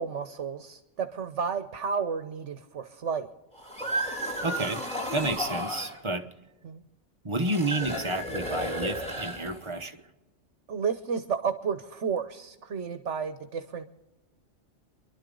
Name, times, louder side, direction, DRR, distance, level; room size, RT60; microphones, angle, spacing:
voice 1, 0.0-3.3 6.6-6.8 10.7-13.8, right 6 dB, 80° right, 9 dB, 1.3 m, -32 dB
sound 1, 3.5-6.0 7.4-9.8, equal, 5° left, 3.0 m, -33 dB
voice 2, 4.4-4.8 5.1-6.3 7.2-10.0, right 2 dB, 25° right, 7 dB, 1.0 m, -30 dB
29.0 x 11.5 x 3.9 m, 1.1 s
omnidirectional pair, 1.2 m